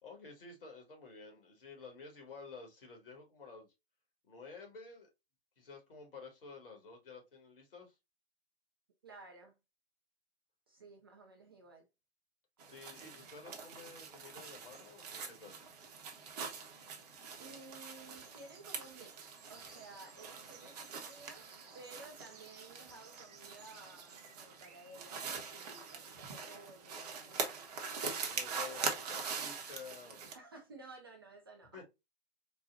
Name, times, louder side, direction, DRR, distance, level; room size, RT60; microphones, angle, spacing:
voice 1, 0.0-3.7 4.2-5.1 5.6-7.9 12.6-15.7 28.2-30.2 31.7-31.8, left 4 dB, 55° left, 1.5 m, -52 dB
voice 2, 9.0-9.5 10.7-11.9 17.4-21.5 21.7-27.7 30.3-31.8, right 3 dB, 25° right, 0.4 m, -55 dB
sound 1, 12.6-30.3, right 5 dB, 40° right, 0.8 m, -43 dB
4.0 x 2.2 x 2.4 m
figure-of-eight pair, 120°, 32 cm